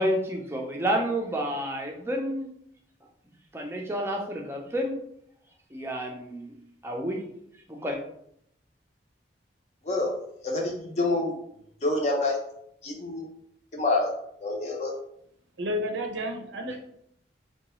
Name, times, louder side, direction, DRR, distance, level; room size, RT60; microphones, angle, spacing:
voice 1, 0.0-2.5 3.5-5.0 5.7-6.5 6.8-7.2 7.7-8.0, equal, 15° right, 1 dB, 0.5 m, -29 dB
voice 2, 10.4-11.3 11.8-12.4 12.8-13.2 13.7-14.1 14.4-14.9, left 2 dB, 35° left, 0 dB, 0.6 m, -27 dB
voice 3, 15.6-16.8, equal, 75° right, 3 dB, 0.6 m, -31 dB
3.7 x 2.2 x 3.0 m, 0.72 s
head